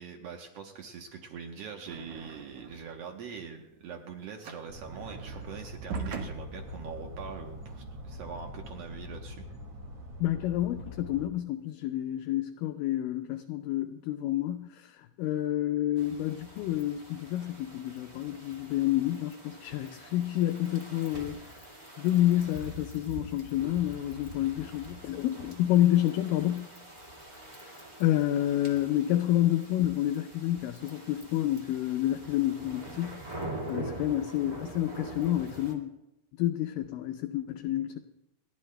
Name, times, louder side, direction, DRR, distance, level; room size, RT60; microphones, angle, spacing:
voice 1, 0.0-9.4, right 6 dB, 85° right, 3 dB, 1.4 m, -43 dB
sound 1, 1.9-3.0 3.3-7.9, right 3 dB, 65° right, 2.4 m, -41 dB
sound 2, 4.7-11.3, left 1 dB, 45° right, 2.4 m, -44 dB
voice 2, 10.2-21.5 22.0-26.7 27.6-35.9 36.4-38.0, left 13 dB, 80° left, 6 dB, 2.1 m, -29 dB
sound 3, 16.0-35.7, right 1 dB, 30° right, 0.7 m, -45 dB
29.5 x 12.5 x 2.2 m, 0.93 s
omnidirectional pair, 4.3 m